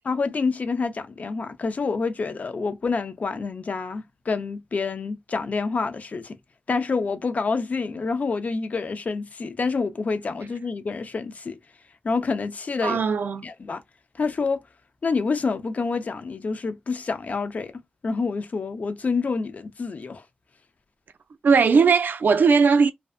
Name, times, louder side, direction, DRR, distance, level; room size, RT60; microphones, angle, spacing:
voice 1, 0.1-6.4 6.7-11.6 12.0-13.0 13.4-13.8 14.2-14.6 15.0-17.7 18.0-20.2, left 4 dB, 50° left, 0.4 m, -27 dB
voice 2, 12.8-13.5 21.4-22.9, right 5 dB, 75° right, 0.3 m, -18 dB
2.5 x 2.1 x 2.3 m
wide cardioid pair, 140°, 3 cm